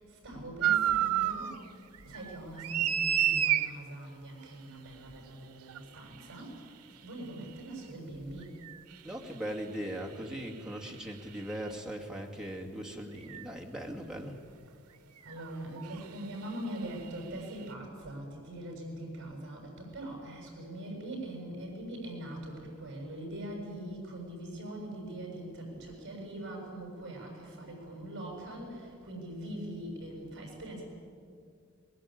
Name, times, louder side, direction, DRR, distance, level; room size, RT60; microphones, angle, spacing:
voice 1, 0.0-1.8 2.0-8.6 15.2-30.8, right 1 dB, 55° right, 0 dB, 6.9 m, -42 dB
sound 1, 0.6-1.6 1.9-3.7 5.7-5.8 8.7-8.8 11.5-11.6 13.3-13.4 15.3-15.5 15.8-15.9, right 10 dB, 90° right, 0.8 m, -28 dB
voice 2, 9.0-14.4, equal, 5° right, -1 dB, 2.3 m, -39 dB
22.5 x 20.5 x 9.0 m, 2.2 s
head